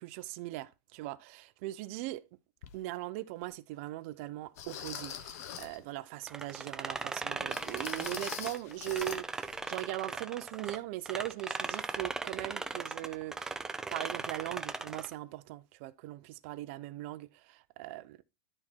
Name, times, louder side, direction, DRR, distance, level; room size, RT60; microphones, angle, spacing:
voice 1, 0.0-2.3 2.7-13.6 13.9-18.2, right 16 dB, 45° right, 0.6 m, -40 dB
sound 1, 2.6-2.8 3.4-3.5 4.6-5.8 7.5-9.2 9.5-9.7 10.1-10.2, left 9 dB, 60° left, 1.2 m, -44 dB
sound 2, 6.3-10.8 11.0-15.1, right 3 dB, 5° right, 0.4 m, -38 dB
12.0 x 4.3 x 4.5 m
supercardioid pair, 165°, 10 cm